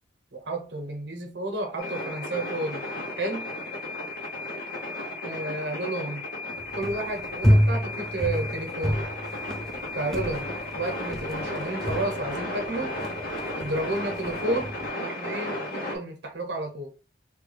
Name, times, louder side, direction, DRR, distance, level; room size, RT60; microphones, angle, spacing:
voice 1, 0.3-2.8 3.2-3.5 5.2-6.3 6.7-9.0 10.0-10.5 10.7-13.0 13.6-16.9, right 2 dB, 75° right, 0.9 m, -31 dB
sound 1, 1.8-16.0, left 1 dB, 55° left, 0.7 m, -34 dB
sound 2, 6.6-14.9, equal, ahead, 0.4 m, -29 dB
3.3 x 2.3 x 3.2 m
head